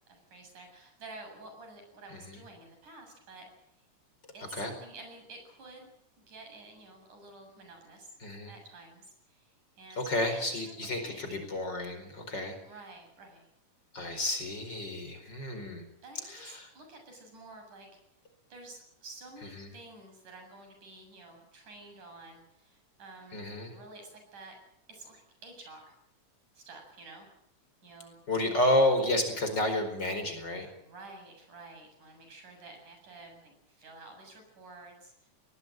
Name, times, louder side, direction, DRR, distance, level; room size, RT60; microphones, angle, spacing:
voice 1, 0.1-3.5 4.3-5.9 6.3-8.1 8.5-9.5 9.8-11.4 12.6-13.5 16.0-17.9 18.5-24.6 24.9-25.9 26.6-27.3 27.8-28.2 30.8-35.3, right 2 dB, 80° right, 4 dB, 9.1 m, -50 dB
voice 2, 2.1-2.4 4.5-4.7 8.2-8.5 9.9-12.6 13.9-15.8 16.2-16.7 19.4-19.7 23.3-23.7 28.3-30.7, left 1 dB, 35° left, 6 dB, 5.2 m, -31 dB
22.0 x 19.5 x 9.1 m, 0.75 s
omnidirectional pair, 3.5 m